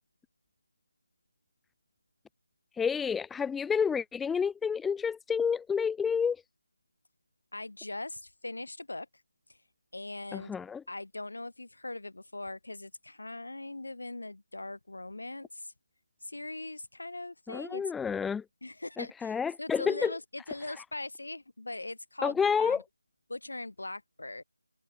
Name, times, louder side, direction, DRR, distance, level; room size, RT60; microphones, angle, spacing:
voice 1, 2.7-6.4 10.3-10.8 17.5-18.4 19.0-20.1 20.8-20.9 22.2-22.8, left 6 dB, 5° left, 0.4 m, -29 dB
voice 2, 7.5-9.1 9.9-10.6 10.9-15.7 16.2-17.8 18.6-22.8 23.3-24.4, left 2 dB, 55° left, 3.6 m, -40 dB
figure-of-eight pair, 165°, 0 cm